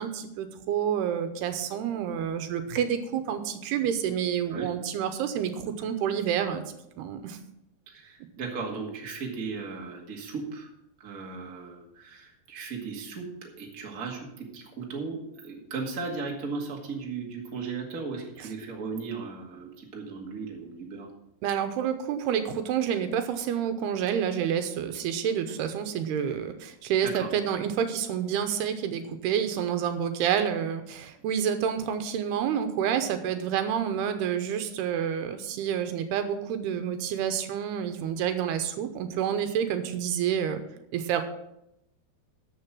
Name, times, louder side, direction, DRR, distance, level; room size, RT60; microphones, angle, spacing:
voice 1, 0.0-6.6 7.0-7.4 21.4-40.6 40.9-41.2, right 8 dB, 80° right, 8 dB, 2.8 m, -28 dB
voice 2, 7.9-10.7 11.0-21.1 27.0-27.3, right 4 dB, 35° right, 0 dB, 1.5 m, -36 dB
13.5 x 6.3 x 6.0 m, 0.82 s
omnidirectional pair, 4.7 m